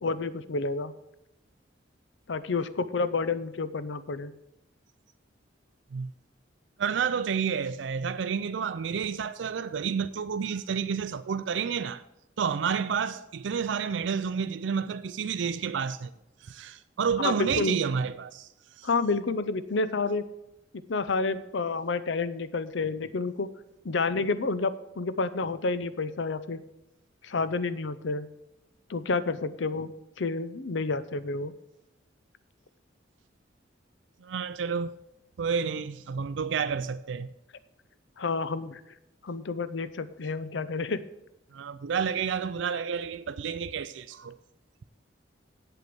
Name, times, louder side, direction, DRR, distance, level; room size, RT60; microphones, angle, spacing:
voice 1, 0.0-0.9 2.3-4.3 17.2-17.8 18.8-20.3 20.9-23.5 23.8-26.6 27.2-28.3 28.9-29.9 30.2-31.5 38.2-38.8 39.2-41.0, left 3 dB, 70° left, 0.6 m, -29 dB
voice 2, 6.8-12.0 12.4-16.1 16.4-18.5 18.8-18.9 34.2-35.0 35.4-37.3 41.5-44.4, right 6 dB, 70° right, 0.4 m, -30 dB
8.0 x 7.8 x 6.9 m
head